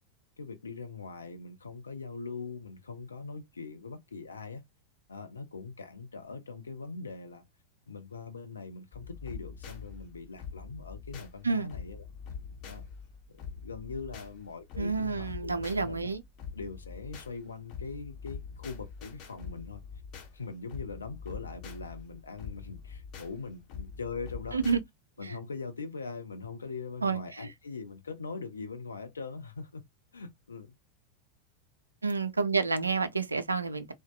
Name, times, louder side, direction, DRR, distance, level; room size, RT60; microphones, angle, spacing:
voice 1, 0.4-4.6 5.1-7.4 7.9-12.0 12.7-12.8 13.3-16.1 16.5-19.8 20.3-24.6 25.2-29.8 30.1-30.7, left 4 dB, 75° left, 0.4 m, -41 dB
sound 1, 8.9-24.8, left 6 dB, 35° left, 1.0 m, -44 dB
voice 2, 14.8-16.2 24.5-24.8 25.2-25.4 27.0-27.5 32.0-33.9, right 4 dB, 80° right, 0.4 m, -29 dB
2.6 x 2.1 x 2.3 m
figure-of-eight pair, 90°, 0 cm